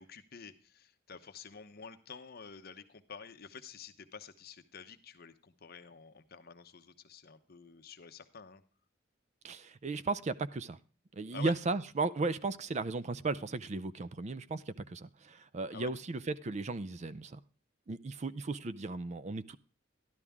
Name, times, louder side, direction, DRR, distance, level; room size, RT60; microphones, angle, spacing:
voice 1, 0.0-8.6 11.3-11.5 15.7-15.9, left 5 dB, 50° left, 0.9 m, -49 dB
voice 2, 9.4-10.8 11.1-17.4 17.9-19.6, right 3 dB, 35° right, 0.5 m, -35 dB
12.5 x 11.5 x 3.6 m
head